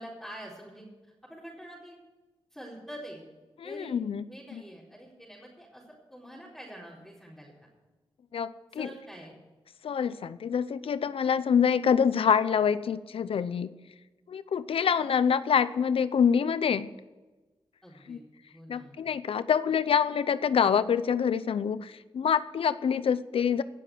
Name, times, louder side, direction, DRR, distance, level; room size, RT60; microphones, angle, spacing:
voice 1, 0.0-2.0 2.5-3.3 3.6-3.9 4.3-7.7 8.7-9.3 17.8-18.2 18.5-19.0, equal, ahead, -6 dB, 4.2 m, -46 dB
voice 2, 3.6-4.2 4.5-4.6 8.3-8.9 9.8-13.7 14.3-16.9 18.1-18.2 18.7-23.6, left 7 dB, 75° left, 15 dB, 0.6 m, -26 dB
17.0 x 7.5 x 7.9 m, 1.2 s
cardioid pair, 60°, 10 cm